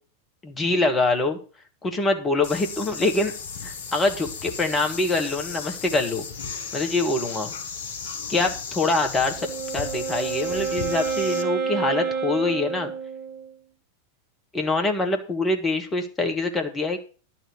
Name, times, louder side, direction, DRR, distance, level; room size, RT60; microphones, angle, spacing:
voice 1, 0.4-1.4 1.8-3.3 3.6-6.3 6.7-7.5 8.3-9.4 9.7-12.9 14.5-17.0, left 2 dB, 15° left, 5 dB, 1.7 m, -24 dB
sound 1, 2.4-11.4, left 5 dB, 55° left, 1.1 m, -35 dB
Wind instrument woodwind instrument, 9.2-13.5, right 5 dB, 35° right, 3.3 m, -29 dB
11.0 x 4.4 x 8.0 m, 0.37 s
figure-of-eight pair, 90°, 0 cm